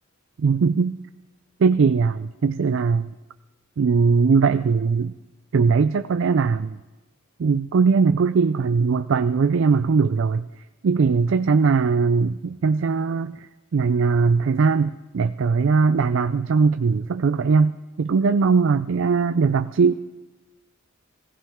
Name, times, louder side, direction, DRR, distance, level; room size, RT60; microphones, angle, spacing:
voice 1, 0.4-1.0 1.6-3.1 3.8-5.1 5.5-6.8 7.4-10.5 10.8-13.5 13.7-19.9, right 5 dB, 65° right, 11 dB, 0.4 m, -20 dB
20.5 x 16.0 x 3.6 m, 1.2 s
head